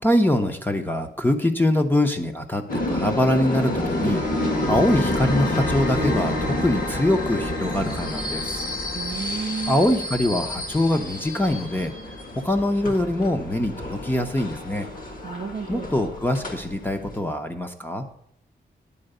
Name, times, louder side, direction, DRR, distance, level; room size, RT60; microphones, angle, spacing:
voice 1, 0.0-4.2 4.7-8.6 9.7-11.9 12.4-14.9 15.7-18.0, left 1 dB, 10° left, 0.8 m, -23 dB
sound 1, 2.7-17.2, left 1 dB, 50° left, 1.4 m, -29 dB
sound 2, 3.5-14.0, left 2 dB, 85° left, 4.0 m, -37 dB
voice 2, 8.9-9.8 15.2-15.9, right 5 dB, 40° right, 0.6 m, -32 dB
10.0 x 4.5 x 7.8 m
wide cardioid pair, 180°, 19 cm